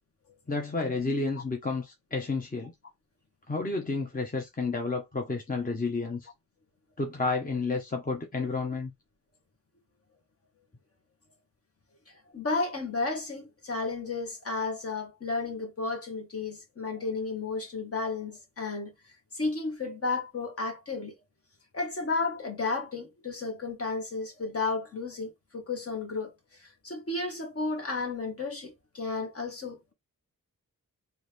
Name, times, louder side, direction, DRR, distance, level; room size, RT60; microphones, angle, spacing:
voice 1, 0.5-2.7 3.5-6.3 7.0-8.9, left 3 dB, 25° left, 1.2 m, -31 dB
voice 2, 12.1-18.9 19.3-21.1 21.7-29.9, left 3 dB, 45° left, 1.7 m, -33 dB
4.0 x 2.8 x 3.4 m
cardioid pair, 70°, 33 cm